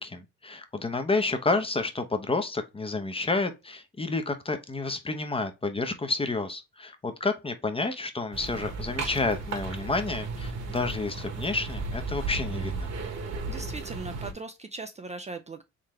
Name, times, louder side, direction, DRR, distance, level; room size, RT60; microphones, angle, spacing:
voice 1, 0.0-12.9, left 3 dB, 20° left, 0.7 m, -30 dB
sound 1, 8.3-14.3, right 3 dB, 60° right, 1.3 m, -34 dB
voice 2, 13.5-15.6, right 3 dB, 25° right, 0.4 m, -39 dB
3.9 x 3.2 x 3.0 m
cardioid pair, 90°, 30 cm